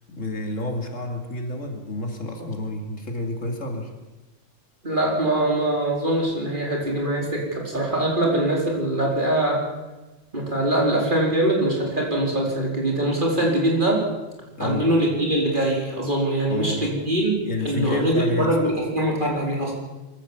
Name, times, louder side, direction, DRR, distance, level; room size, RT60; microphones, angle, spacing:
voice 1, 0.1-3.9 14.4-14.9 16.5-16.8 17.4-18.6, left 2 dB, 75° left, 2 dB, 3.3 m, -29 dB
voice 2, 4.8-9.6 10.3-14.0 14.6-17.3 17.6-19.7, right 1 dB, 40° right, -2 dB, 4.7 m, -23 dB
23.5 x 15.0 x 7.4 m, 1.1 s
omnidirectional pair, 1.3 m